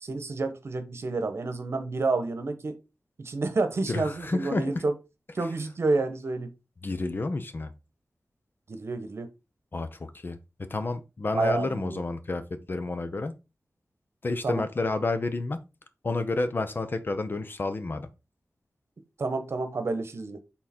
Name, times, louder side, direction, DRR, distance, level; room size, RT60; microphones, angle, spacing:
voice 1, 0.0-2.8 3.2-4.9 5.3-6.5 8.7-9.3 11.3-12.0 14.4-14.6 19.2-20.4, right 3 dB, 60° right, 1.0 m, -29 dB
voice 2, 3.9-4.8 6.8-7.7 9.7-10.4 10.7-13.3 14.2-15.6 16.0-18.1, left 3 dB, 45° left, 0.8 m, -30 dB
6.3 x 4.0 x 4.3 m
wide cardioid pair, 105°, 5 cm